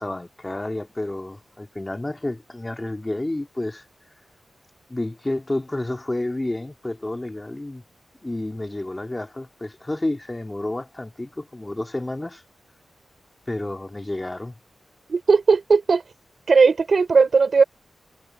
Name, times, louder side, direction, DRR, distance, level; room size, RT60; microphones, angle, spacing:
voice 1, 0.0-3.9 4.9-7.8 8.2-12.4 13.5-14.5, left 1 dB, 25° left, 3.0 m, -30 dB
voice 2, 15.1-16.0 16.5-17.6, right 4 dB, 65° right, 4.7 m, -17 dB
cardioid pair, 45°, 0 cm